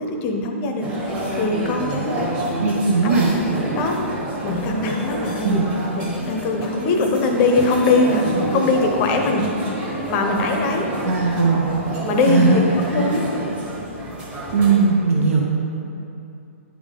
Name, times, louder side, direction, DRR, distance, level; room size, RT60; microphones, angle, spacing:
voice 1, 0.0-3.2 3.8-4.0 4.4-5.6 6.0-9.5 10.1-10.9 12.0-12.6 12.9-13.2, left 3 dB, 25° left, 3 dB, 0.6 m, -22 dB
sound 1, 0.8-14.9, right 2 dB, 15° right, 1.1 m, -28 dB
voice 2, 2.6-3.3 5.4-5.7 11.1-11.6 12.3-12.6 14.5-15.4, right 4 dB, 75° right, -2 dB, 0.8 m, -18 dB
9.8 x 3.6 x 3.7 m, 2.7 s
hypercardioid pair, 155°, 8 cm